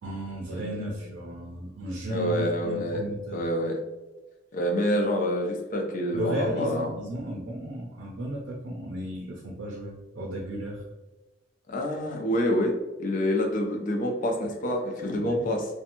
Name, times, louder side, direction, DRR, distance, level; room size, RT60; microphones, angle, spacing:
voice 1, 0.0-3.4 6.1-10.8 15.1-15.5, equal, 85° right, -1 dB, 0.5 m, -34 dB
voice 2, 2.1-3.0 3.3-3.7 4.5-6.9 11.7-12.7 13.0-15.7, equal, 45° left, 1 dB, 0.5 m, -27 dB
2.8 x 2.2 x 2.5 m, 1.1 s
head